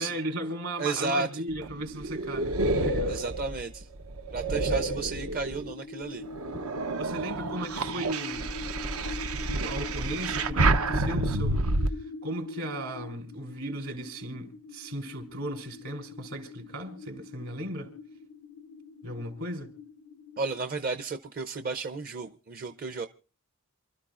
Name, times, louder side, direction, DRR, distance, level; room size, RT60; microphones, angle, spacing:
voice 1, 0.0-3.2 7.0-8.5 9.5-17.9 19.0-19.7, right 1 dB, 70° right, 3.5 m, -36 dB
voice 2, 0.8-1.4 3.1-3.9 4.3-6.2 20.4-23.1, right 3 dB, 40° right, 0.6 m, -32 dB
sound 1, 1.5-5.7 6.2-11.9, right 2 dB, 85° right, 0.9 m, -29 dB
sound 2, 5.6-20.6, left 3 dB, 70° left, 0.6 m, -43 dB
28.0 x 13.0 x 2.5 m
head